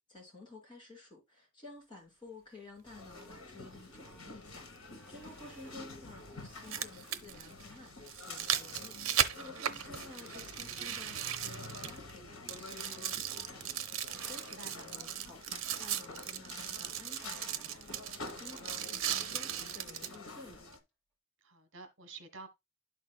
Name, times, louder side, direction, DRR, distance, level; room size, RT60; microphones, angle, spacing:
voice 1, 0.0-7.9 8.2-17.8 18.1-20.6, left 2 dB, 25° left, 4.5 m, -53 dB
sound 1, 1.9-2.8 3.2-7.9 8.5-8.6 9.5-12.0 12.6-13.1 13.5-13.7 14.1-14.8 15.5-16.1 16.9-18.3 19.1-20.5, right 1 dB, 5° left, 3.2 m, -61 dB
sound 2, 2.8-20.8, left 3 dB, 80° left, 1.7 m, -49 dB
sound 3, 3.2-3.3 5.2-5.3 6.4-12.2 12.5-20.2 20.7-20.8, right 10 dB, 85° right, 0.7 m, -37 dB
voice 2, 5.4-5.8 9.9-10.1 14.6-14.9 21.4-22.5, right 3 dB, 65° right, 1.3 m, -51 dB
12.0 x 4.4 x 2.3 m
head